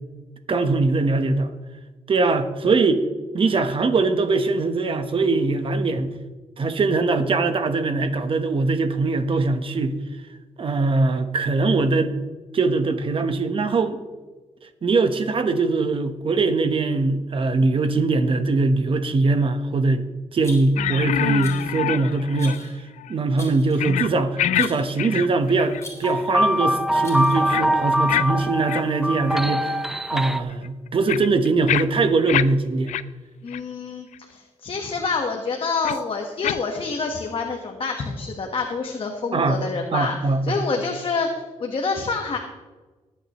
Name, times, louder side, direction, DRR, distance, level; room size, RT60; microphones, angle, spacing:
voice 1, 0.5-1.5 2.1-3.0 3.3-6.1 6.6-10.0 10.6-12.1 12.5-14.0 14.6-20.0 20.3-22.7 23.1-29.8 30.1-32.9 39.3-39.6 39.9-40.6, right 3 dB, 45° right, 9 dB, 1.2 m, -21 dB
Rattle, 20.4-20.9 21.4-21.8 22.4-22.8 23.4-23.9 24.6-25.0 25.8-26.3 27.0-27.6, left 2 dB, 25° left, 3.7 m, -41 dB
sound 1, 20.8-22.7 23.0-23.1 23.8-24.1 24.4-24.7 25.0-25.8 26.2-26.4 27.5-27.6 28.1-28.3 28.7-28.8 29.3-29.4 29.9-30.0 30.5-32.4 32.9-33.0 33.5-33.6 34.1-34.2 35.8-36.0 36.4-36.6, left 11 dB, 90° left, 0.4 m, -26 dB
sound 2, 26.0-30.4, equal, 5° right, 0.7 m, -23 dB
voice 2, 33.4-40.2 40.5-42.4, left 4 dB, 45° left, 2 dB, 1.4 m, -27 dB
20.0 x 8.9 x 3.1 m, 1.3 s
cardioid pair, 110°, 12 cm